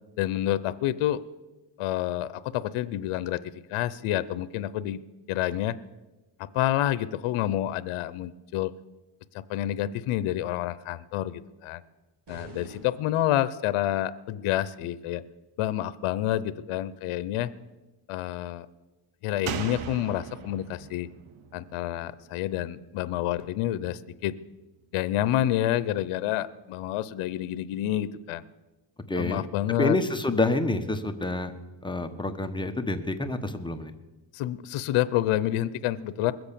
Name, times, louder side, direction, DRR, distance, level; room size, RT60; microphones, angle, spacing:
voice 1, 0.2-1.2 1.8-5.0 5.3-5.8 6.4-8.7 9.3-11.8 12.3-15.2 15.6-17.5 18.1-18.7 19.2-21.1 21.5-24.4 24.9-28.4 29.2-30.0 34.3-36.3, left 13 dB, 80° left, 15 dB, 0.8 m, -28 dB
sound 1, 12.3-13.7, right 1 dB, 55° right, 4.4 m, -47 dB
Slam, 19.5-22.9 23.2-23.3, right 8 dB, 70° right, 1.0 m, -39 dB
voice 2, 29.1-29.5 29.8-31.5 31.8-33.9, left 2 dB, 10° left, 6 dB, 1.1 m, -28 dB
21.0 x 8.0 x 6.9 m, 1.1 s
cardioid pair, 105°, 50 cm